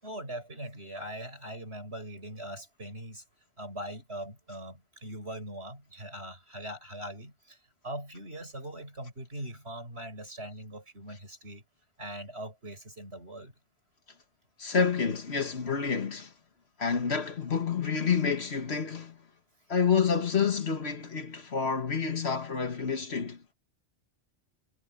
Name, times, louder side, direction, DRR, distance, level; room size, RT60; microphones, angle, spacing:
voice 1, 0.0-3.2 3.6-7.6 7.8-11.6 12.0-13.5, right 1 dB, 65° right, 7.8 m, -41 dB
voice 2, 14.6-16.3 16.8-19.2 19.7-23.4, left 6 dB, 65° left, 1.8 m, -28 dB
omnidirectional pair, 1.2 m